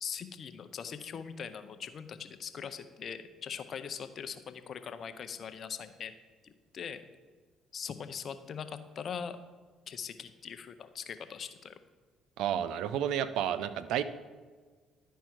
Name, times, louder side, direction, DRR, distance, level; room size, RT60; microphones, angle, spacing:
voice 1, 0.0-6.1 6.4-7.0 7.7-9.4 9.9-11.7, left 7 dB, 55° left, 10 dB, 0.6 m, -41 dB
voice 2, 12.4-14.0, right 10 dB, 75° right, 14 dB, 0.4 m, -31 dB
11.5 x 4.6 x 4.6 m, 1.4 s
hypercardioid pair, 60°, 0 cm